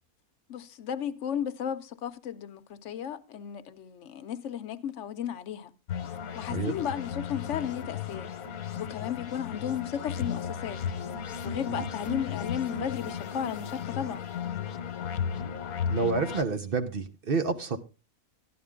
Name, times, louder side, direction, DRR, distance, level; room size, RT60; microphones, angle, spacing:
voice 1, 0.5-5.7 6.3-8.3 8.7-10.8 11.4-14.2, left 9 dB, 65° left, 1.0 m, -34 dB
sound 1, 5.9-16.4, left 7 dB, 90° left, 1.3 m, -35 dB
voice 2, 15.9-17.8, right 4 dB, 45° right, 1.0 m, -29 dB
13.0 x 10.5 x 3.6 m
omnidirectional pair, 1.5 m